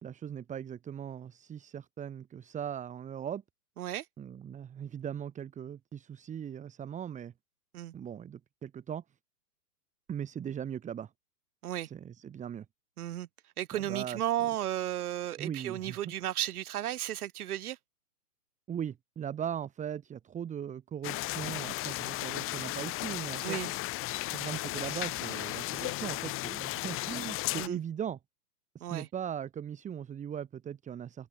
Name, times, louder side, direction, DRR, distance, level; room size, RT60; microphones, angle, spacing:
voice 1, 0.0-3.4 4.2-7.3 7.9-9.0 10.1-11.1 11.8-12.7 13.7-14.3 15.4-16.1 18.7-23.6 24.3-28.2 28.7-31.3, right 9 dB, 15° right, 2.0 m, -39 dB
voice 2, 13.0-13.3 13.6-17.8 23.4-23.7 27.6-27.8 28.8-29.1, right 12 dB, 65° right, 1.2 m, -34 dB
sound 1, 21.0-27.7, left 18 dB, 25° left, 1.9 m, -35 dB
open air
hypercardioid pair, 130°, 47 cm